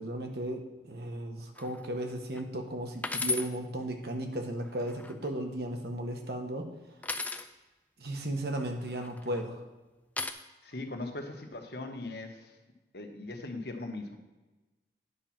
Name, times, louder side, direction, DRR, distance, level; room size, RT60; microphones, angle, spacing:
voice 1, 0.0-6.7 8.0-9.6, right 1 dB, 60° right, 4 dB, 1.3 m, -35 dB
sound 1, 1.6-1.9 2.4-2.5 3.0-3.5 4.7-5.3 7.0-7.5 8.9-9.4 10.2-10.3, left 3 dB, 10° left, 0.4 m, -34 dB
voice 2, 10.6-12.5 12.9-14.2, left 2 dB, 65° left, 3 dB, 1.3 m, -39 dB
9.9 x 5.0 x 6.0 m, 1.1 s
head